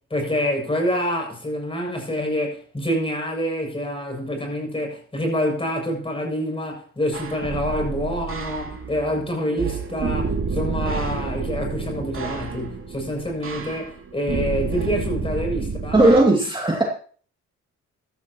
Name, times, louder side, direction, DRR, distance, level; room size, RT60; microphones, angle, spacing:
voice 1, 0.1-16.0, equal, 20° left, 7.0 m, -26 dB
sound 1, 7.1-16.2, right 4 dB, 45° right, 2.7 m, -29 dB
voice 2, 15.9-16.8, right 2 dB, 15° right, 2.5 m, -16 dB
15.5 x 13.0 x 3.0 m
cardioid pair, 90°, 30 cm